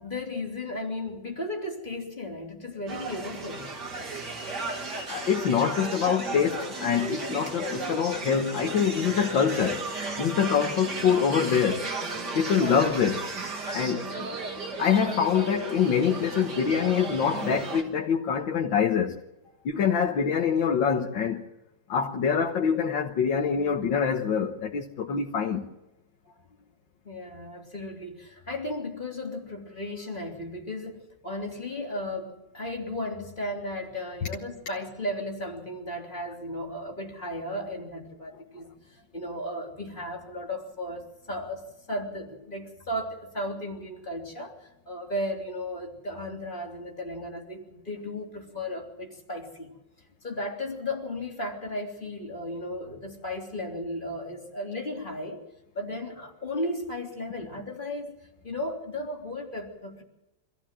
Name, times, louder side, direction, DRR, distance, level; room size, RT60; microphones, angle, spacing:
voice 1, 0.0-3.7 12.5-12.9 27.0-49.7 50.2-55.4 55.8-58.2 58.4-60.0, left 1 dB, 25° left, 3.6 m, -35 dB
sound 1, 2.9-17.8, right 3 dB, 65° right, 3.3 m, -35 dB
voice 2, 4.6-9.9 10.2-11.9 12.3-13.3 13.7-14.3 14.8-19.2 19.7-21.5 21.9-25.7, left 7 dB, 85° left, 2.1 m, -25 dB
25.5 x 15.0 x 7.6 m
omnidirectional pair, 2.0 m